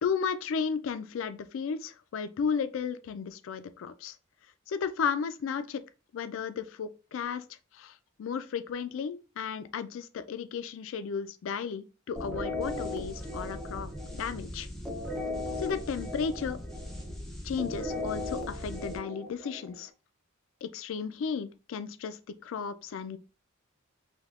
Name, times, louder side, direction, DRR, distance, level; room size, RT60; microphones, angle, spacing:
voice 1, 0.0-4.2 4.7-5.8 6.1-7.4 7.7-14.7 15.6-16.6 17.4-19.9 20.6-23.2, left 6 dB, 70° left, 0.3 m, -34 dB
sound 1, 12.2-19.8, left 1 dB, ahead, 0.5 m, -37 dB
3.5 x 2.7 x 2.4 m
head